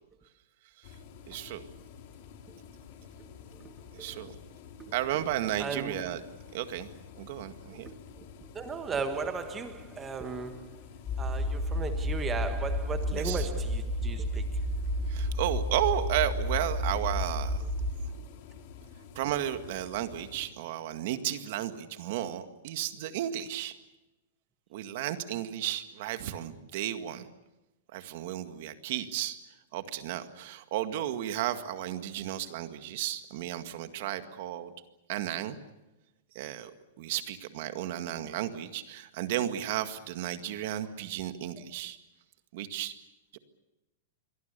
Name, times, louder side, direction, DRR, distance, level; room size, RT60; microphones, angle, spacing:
sound 1, 0.8-20.5, left 7 dB, 40° left, 3.0 m, -50 dB
voice 1, 1.3-1.6 3.9-4.4 4.9-6.2 6.5-6.9 7.2-7.9 13.1-13.5 15.1-17.6 19.2-23.7 24.7-27.2 27.9-29.4 29.7-34.7 35.1-35.6 36.4-36.7 37.0-42.0 42.5-42.9 43.3-43.4, right 12 dB, 45° right, 1.9 m, -33 dB
voice 2, 3.2-4.2 4.8-4.9 5.6-6.0 7.9-10.9 11.2-14.4, right 5 dB, 15° right, 1.3 m, -37 dB
sound 2, 11.0-17.9, left 1 dB, 15° left, 4.4 m, -31 dB
27.5 x 23.0 x 6.9 m
supercardioid pair, 170°, 0 cm